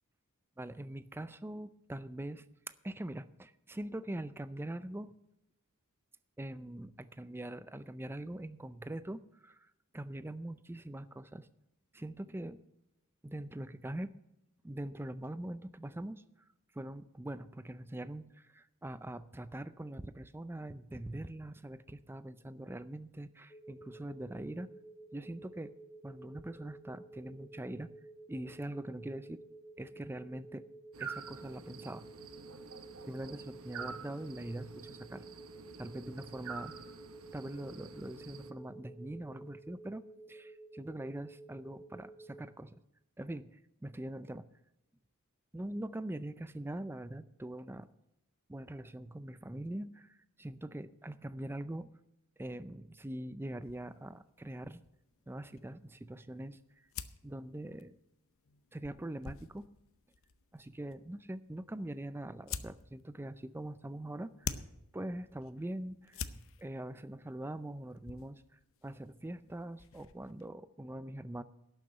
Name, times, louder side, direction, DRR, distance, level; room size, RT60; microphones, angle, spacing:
voice 1, 0.6-2.4 2.8-5.1 6.4-11.5 11.9-12.6 13.2-14.1 14.6-16.2 16.7-24.7 25.1-25.7 26.0-27.9 28.3-29.4 29.8-30.7 31.0-32.1 33.1-35.2 35.8-36.8 37.3-42.8 43.2-44.5 45.5-47.9 48.5-51.9 52.4-54.8 55.3-56.9 57.2-58.0 58.7-59.6 60.5-64.6 64.9-71.4, right 1 dB, 10° right, 14 dB, 0.4 m, -43 dB
sound 1, 23.5-42.4, right 2 dB, 15° left, 2.3 m, -53 dB
sound 2, 30.9-38.5, right 6 dB, 65° right, 0.9 m, -48 dB
sound 3, 53.6-70.5, left 6 dB, 60° left, 0.7 m, -49 dB
12.0 x 6.8 x 8.8 m, 0.88 s
head